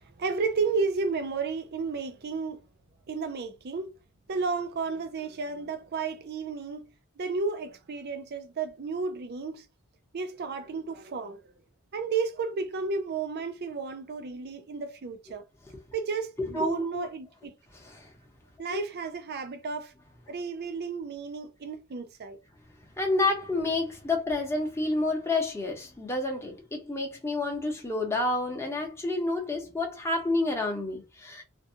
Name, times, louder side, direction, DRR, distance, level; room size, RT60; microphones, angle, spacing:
voice 1, 0.0-2.6 3.1-3.9 4.3-6.8 7.2-9.6 10.1-11.5 11.9-15.5 15.9-17.5 18.6-19.9 20.3-22.4, right 4 dB, 45° right, 0.5 m, -32 dB
voice 2, 16.4-17.1 17.8-18.1 18.7-18.8 23.0-31.4, left 2 dB, 10° left, 0.8 m, -29 dB
2.6 x 2.2 x 2.6 m
head